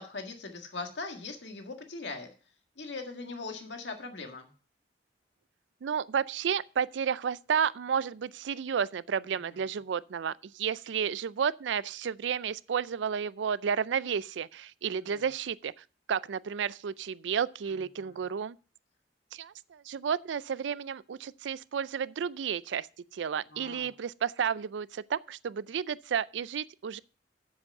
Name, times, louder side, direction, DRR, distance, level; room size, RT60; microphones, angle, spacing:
voice 1, 0.0-2.3 2.8-4.5 9.5-9.6 15.0-15.2 17.7-18.2 23.5-23.9, left 3 dB, 90° left, 1.8 m, -41 dB
voice 2, 5.8-15.7 16.1-18.6 19.3-22.9 23.1-27.0, right 7 dB, 90° right, 0.4 m, -32 dB
7.8 x 7.3 x 6.6 m
head